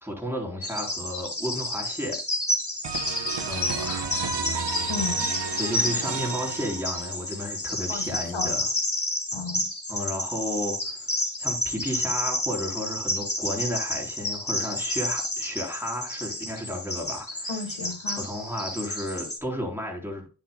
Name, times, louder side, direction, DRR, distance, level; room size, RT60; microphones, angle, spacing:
voice 1, 0.0-2.2 3.4-4.0 5.6-8.7 9.9-11.1 11.4-17.6 18.1-20.3, equal, 5° right, 3.9 m, -33 dB
Bird vocalization bird call bird song, 0.6-19.4, left 1 dB, 30° left, 3.3 m, -30 dB
sound 1, 2.8-7.4, right 5 dB, 65° right, 1.1 m, -32 dB
voice 2, 4.9-5.3 7.9-8.5 9.3-9.7 17.5-18.3, left 4 dB, 80° left, 1.6 m, -34 dB
9.3 x 7.6 x 2.3 m
cardioid pair, 45°, 46 cm